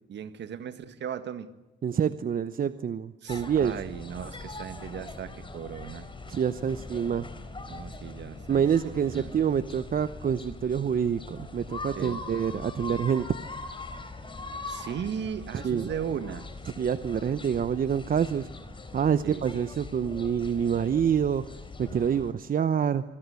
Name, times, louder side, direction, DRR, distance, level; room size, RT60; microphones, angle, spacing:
voice 1, 0.1-1.5 3.2-6.1 7.7-9.5 12.0-12.2 14.7-16.5 19.2-19.4, right 8 dB, 65° right, 11 dB, 1.8 m, -37 dB
voice 2, 1.8-3.7 6.3-7.3 8.5-13.4 15.5-15.9 16.8-18.5 18.9-23.0, right 8 dB, 45° right, 13 dB, 0.9 m, -27 dB
sound 1, 3.3-22.3, left 3 dB, 25° left, 4.1 m, -41 dB
25.0 x 22.5 x 8.3 m, 1.0 s
cardioid pair, 90°, 20 cm